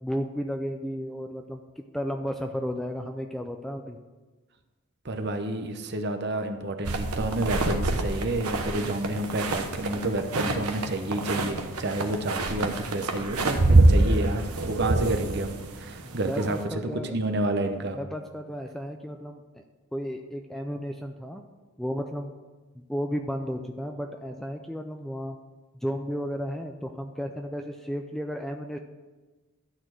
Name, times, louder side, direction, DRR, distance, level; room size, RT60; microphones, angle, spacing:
voice 1, 0.0-4.0 16.0-17.1 17.9-19.6 19.9-21.4 21.8-22.3 22.7-25.4 25.7-28.8, equal, ahead, 4 dB, 0.3 m, -33 dB
voice 2, 5.0-16.8 17.1-18.0, right 2 dB, 50° right, 6 dB, 0.8 m, -30 dB
sound 1, 6.8-16.6, right 2 dB, 85° right, 1.1 m, -26 dB
12.0 x 4.3 x 7.5 m, 1.2 s
head